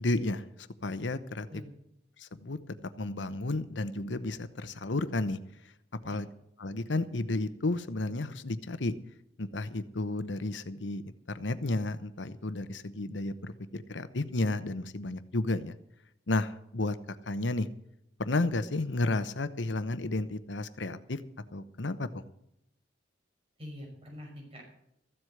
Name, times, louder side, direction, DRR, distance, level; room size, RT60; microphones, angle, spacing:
voice 1, 0.0-1.5 2.2-5.4 6.0-6.3 6.6-8.9 9.4-11.0 11.3-15.7 16.3-17.7 18.2-21.2 21.5-22.2, left 2 dB, 75° left, 12 dB, 0.9 m, -32 dB
voice 2, 23.6-24.8, left 1 dB, 35° right, -1 dB, 5.8 m, -45 dB
14.5 x 7.8 x 7.9 m, 0.78 s
head